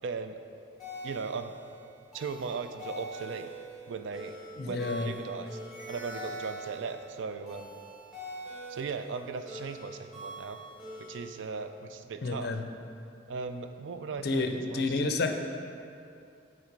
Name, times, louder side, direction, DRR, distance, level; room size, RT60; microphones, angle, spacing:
voice 1, 0.0-0.4 1.0-1.5 2.1-3.5 3.9-4.3 4.6-5.6 5.9-7.8 8.7-10.6 11.0-12.5 13.3-15.1, right 5 dB, 75° right, 8 dB, 0.4 m, -38 dB
sound 1, 0.8-11.5, right 1 dB, ahead, 1.5 m, -44 dB
voice 2, 4.6-5.1 12.2-12.6 14.2-15.4, left 3 dB, 55° left, 6 dB, 0.4 m, -30 dB
8.7 x 3.2 x 4.6 m, 2.5 s
head